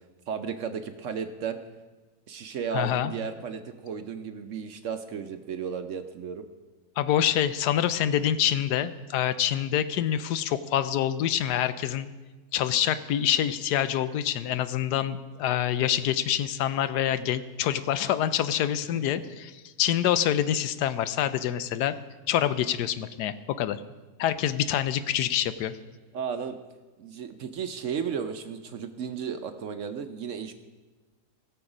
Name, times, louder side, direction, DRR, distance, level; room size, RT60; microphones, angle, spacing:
voice 1, 0.3-1.6 2.3-6.4 19.1-19.2 26.1-26.6 27.0-30.5, right 7 dB, 60° right, 8 dB, 0.9 m, -34 dB
voice 2, 2.7-3.1 7.0-12.1 12.5-21.9 22.3-23.8 24.2-25.7, left 10 dB, 85° left, 13 dB, 1.2 m, -26 dB
17.0 x 7.0 x 4.9 m, 1.3 s
omnidirectional pair, 1.7 m